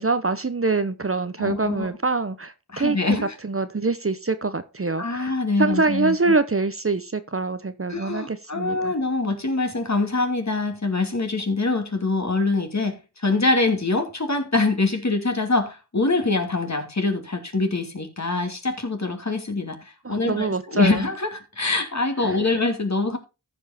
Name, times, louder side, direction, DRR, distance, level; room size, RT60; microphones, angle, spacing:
voice 1, 0.0-3.2 3.4-5.3 5.6-8.9 20.0-21.1 22.2-22.4, right 3 dB, 35° right, 0.9 m, -25 dB
voice 2, 1.4-1.9 2.7-3.3 5.0-6.1 7.9-23.2, left 3 dB, 45° left, 2.6 m, -24 dB
14.0 x 5.4 x 4.3 m
cardioid pair, 45°, 39 cm